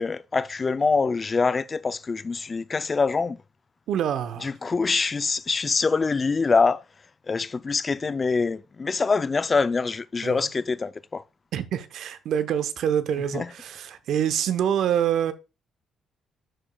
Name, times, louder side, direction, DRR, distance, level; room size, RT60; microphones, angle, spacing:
voice 1, 0.0-3.4 4.4-6.8 7.3-11.2 13.3-13.5, left 4 dB, 30° left, 0.4 m, -24 dB
voice 2, 3.9-4.5 10.2-10.5 11.5-15.3, right 9 dB, 75° right, 0.8 m, -26 dB
12.0 x 5.0 x 2.3 m
cardioid pair, 90°, 0 cm